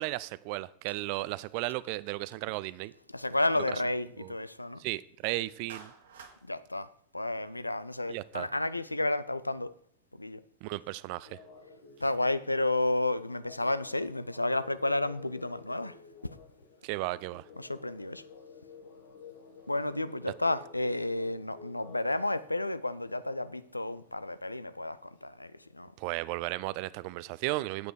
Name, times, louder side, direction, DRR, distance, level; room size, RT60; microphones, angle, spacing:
voice 1, 0.0-2.9 4.2-4.3 4.8-5.9 8.1-8.5 10.6-11.4 16.8-17.4 26.0-27.9, right 19 dB, 45° right, 0.4 m, -35 dB
voice 2, 3.1-4.8 6.4-9.7 10.2-10.4 12.0-16.0 17.6-18.2 19.7-25.9, left 2 dB, 85° left, 0.4 m, -31 dB
Clapping, 5.7-6.4, right 5 dB, 60° right, 1.5 m, -48 dB
sound 1, 11.2-26.8, left 5 dB, 60° left, 1.4 m, -54 dB
8.8 x 8.0 x 4.8 m
figure-of-eight pair, 90°, 0 cm